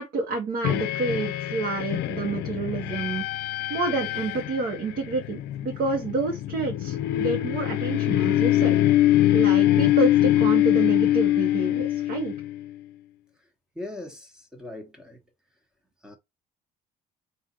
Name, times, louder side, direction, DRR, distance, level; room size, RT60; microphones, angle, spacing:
voice 1, 0.0-3.2 3.7-8.8 9.3-12.3, right 3 dB, 60° right, 1.2 m, -29 dB
sound 1, 0.6-12.7, left 14 dB, 75° left, 0.5 m, -23 dB
voice 2, 13.7-15.2 16.0-16.2, left 2 dB, 5° right, 1.2 m, -40 dB
3.8 x 2.7 x 4.1 m
cardioid pair, 110°, 17 cm